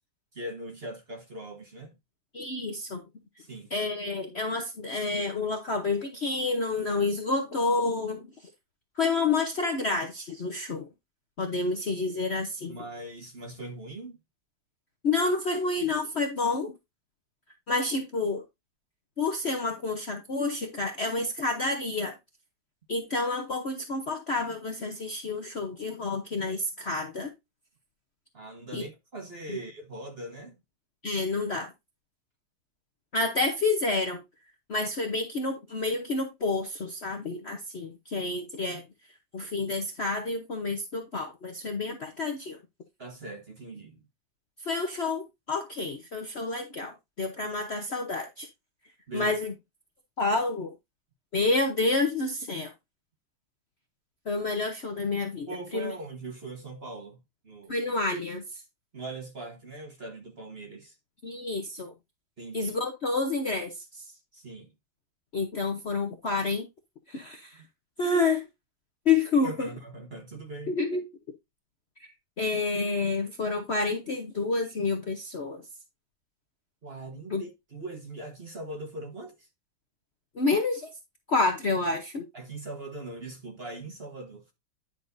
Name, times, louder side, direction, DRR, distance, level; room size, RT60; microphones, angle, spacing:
voice 1, 0.3-1.9 3.4-3.7 12.7-14.2 28.3-30.6 43.0-44.0 49.1-49.4 55.5-57.8 58.9-61.0 62.4-62.7 64.3-64.7 69.4-70.7 76.8-79.5 82.3-84.5, right 2 dB, 35° right, 1.3 m, -41 dB
voice 2, 2.3-3.0 3.7-8.2 9.0-10.9 11.4-12.7 15.0-16.7 17.7-18.4 19.2-22.1 22.9-27.3 28.7-28.9 29.5-29.6 31.0-31.7 33.1-34.2 34.7-38.8 39.3-42.6 44.6-48.5 49.1-49.5 50.2-50.7 51.3-52.7 54.3-55.9 57.7-58.6 61.2-61.9 62.5-64.1 65.3-66.7 67.1-67.6 68.0-68.5 69.0-69.7 70.7-71.0 72.0-72.1 72.4-75.7 77.3-77.4 80.3-80.9 81.3-82.2, left 3 dB, 45° left, 0.9 m, -29 dB
10.0 x 6.3 x 2.6 m
omnidirectional pair, 2.1 m